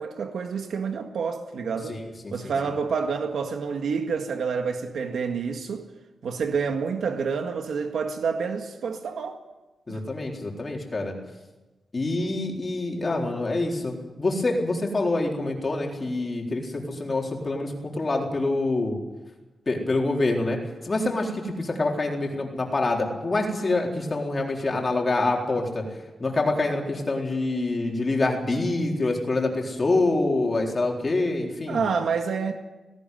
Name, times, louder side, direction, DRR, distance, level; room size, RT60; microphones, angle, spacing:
voice 1, 0.0-2.0 2.3-5.9 6.2-9.4 9.9-10.0 31.7-32.5, right 5 dB, 85° right, 5 dB, 1.9 m, -28 dB
voice 2, 1.9-2.7 9.9-11.1 11.9-19.0 19.7-20.6 20.8-25.8 26.2-31.8, left 2 dB, 30° left, 0 dB, 4.1 m, -26 dB
18.5 x 18.5 x 9.3 m, 1.1 s
wide cardioid pair, 160°, 0 cm